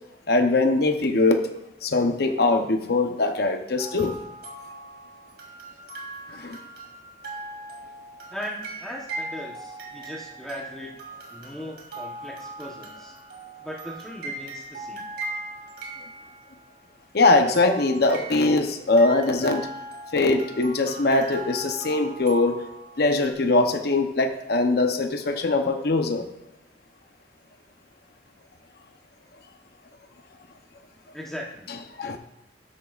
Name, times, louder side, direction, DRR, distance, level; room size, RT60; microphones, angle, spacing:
voice 1, 0.3-1.5 1.8-4.1 6.3-6.6 17.1-19.7 20.1-22.7 23.0-26.2 32.0-32.2, left 2 dB, 60° left, 5 dB, 0.8 m, -22 dB
sound 1, 3.8-16.8 17.5-23.3, right 2 dB, 65° right, 2.5 m, -39 dB
voice 2, 8.3-10.9 11.3-13.1 13.6-15.0 31.1-31.7, left 1 dB, 5° left, -3 dB, 1.0 m, -38 dB
13.0 x 8.9 x 2.4 m, 0.85 s
head